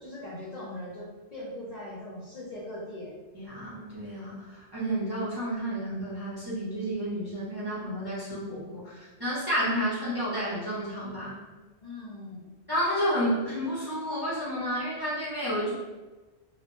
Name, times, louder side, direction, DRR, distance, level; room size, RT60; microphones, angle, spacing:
voice 1, 0.0-3.1 11.8-12.5, left 1 dB, 50° left, -7 dB, 0.5 m, -40 dB
voice 2, 3.3-11.4 12.7-15.7, equal, 30° right, -9 dB, 0.5 m, -31 dB
2.1 x 2.0 x 2.9 m, 1.2 s
omnidirectional pair, 1.1 m